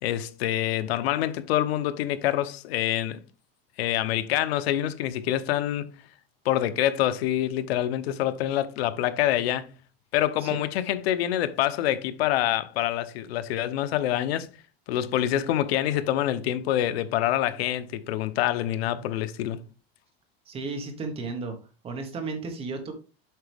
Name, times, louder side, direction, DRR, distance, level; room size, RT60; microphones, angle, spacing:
voice 1, 0.0-3.2 3.8-5.9 6.4-9.7 10.1-14.5 14.9-19.6, left 12 dB, 85° left, 0.9 m, -26 dB
voice 2, 20.5-21.5 21.8-22.9, right 3 dB, 20° right, 1.3 m, -33 dB
7.8 x 5.8 x 3.5 m
supercardioid pair, 175°, 30 cm